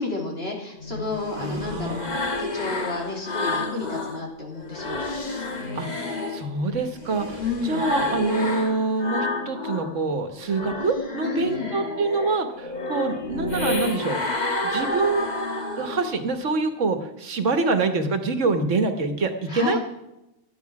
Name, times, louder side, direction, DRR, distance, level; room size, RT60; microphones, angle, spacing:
voice 1, 0.0-2.1 2.4-5.0 7.4-7.9 11.2-11.7 19.5-19.8, left 3 dB, 50° left, -1 dB, 2.9 m, -31 dB
sound 1, 0.8-4.2 4.6-10.0 10.3-16.2, left 2 dB, 35° left, 1.5 m, -30 dB
voice 2, 1.4-2.1 5.7-14.2 14.6-19.8, right 3 dB, 70° right, 7 dB, 1.5 m, -26 dB
12.5 x 9.6 x 5.9 m, 0.92 s
omnidirectional pair, 1.3 m